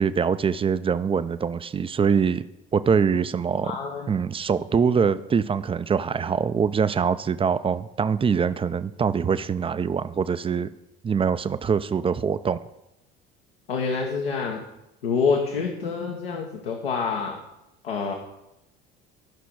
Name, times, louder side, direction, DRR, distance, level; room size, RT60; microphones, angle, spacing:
voice 1, 0.0-2.5 2.7-3.7 4.1-10.7 11.0-12.6, right 6 dB, 20° right, 14 dB, 0.5 m, -23 dB
voice 2, 3.6-4.2 13.7-14.6 15.0-17.4 17.8-18.1, left 5 dB, 80° left, 1 dB, 1.2 m, -27 dB
13.5 x 5.9 x 4.7 m, 0.91 s
figure-of-eight pair, 60°, 30 cm